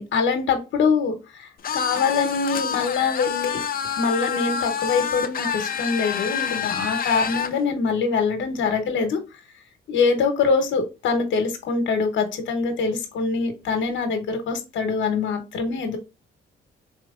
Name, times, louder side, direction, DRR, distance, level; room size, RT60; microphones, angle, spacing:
voice 1, 0.0-3.6 4.0-9.2 9.9-16.0, left 5 dB, 75° left, 5 dB, 1.0 m, -24 dB
sound 1, 1.6-7.5, left 7 dB, 45° left, 0.7 m, -27 dB
4.2 x 3.1 x 3.6 m, 0.28 s
cardioid pair, 90°, 20 cm